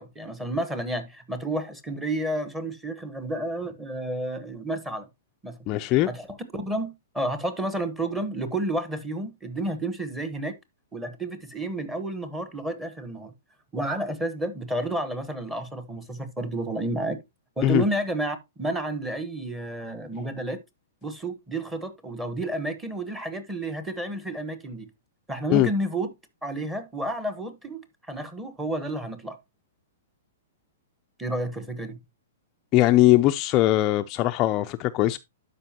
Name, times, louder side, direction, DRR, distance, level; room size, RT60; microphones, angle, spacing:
voice 1, 0.0-5.1 5.4-5.6 6.1-10.6 10.9-13.3 13.7-17.2 17.6-20.6 21.0-24.9 25.3-26.1 26.4-29.4 31.2-32.0, right 1 dB, 10° right, 1.1 m, -31 dB
voice 2, 5.7-6.1 17.6-17.8 25.5-25.7 32.7-35.2, left 15 dB, 30° left, 0.3 m, -20 dB
12.0 x 5.1 x 2.8 m
hypercardioid pair, 150°, 0 cm